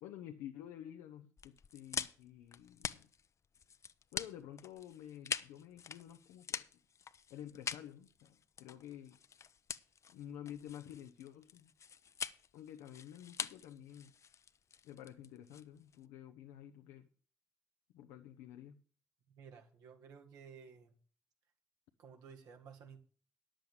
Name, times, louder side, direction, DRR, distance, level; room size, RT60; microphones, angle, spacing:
voice 1, 0.0-3.1 4.1-6.7 7.3-9.2 10.1-11.7 12.5-14.1 14.8-17.1 17.9-18.8, left 11 dB, 85° left, 6 dB, 0.8 m, -51 dB
sound 1, 1.4-16.0, left 7 dB, 50° left, 0.7 m, -45 dB
voice 2, 19.3-21.0 22.0-23.0, right 6 dB, 75° right, 4 dB, 1.9 m, -55 dB
10.5 x 7.6 x 6.8 m, 0.41 s
hypercardioid pair, 45°, 6 cm